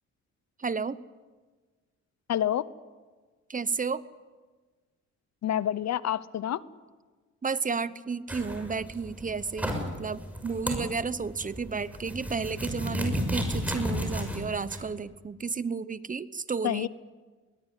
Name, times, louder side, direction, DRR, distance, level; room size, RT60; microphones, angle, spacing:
voice 1, 0.6-1.0 3.5-4.0 7.4-16.9, right 5 dB, 25° right, 16 dB, 0.9 m, -32 dB
voice 2, 2.3-2.6 5.4-6.6 16.6-16.9, left 11 dB, 60° left, 17 dB, 0.9 m, -28 dB
sound 1, 8.3-14.8, equal, 5° right, 6.4 m, -34 dB
21.5 x 20.0 x 9.4 m, 1.4 s
cardioid pair, 90°, 30 cm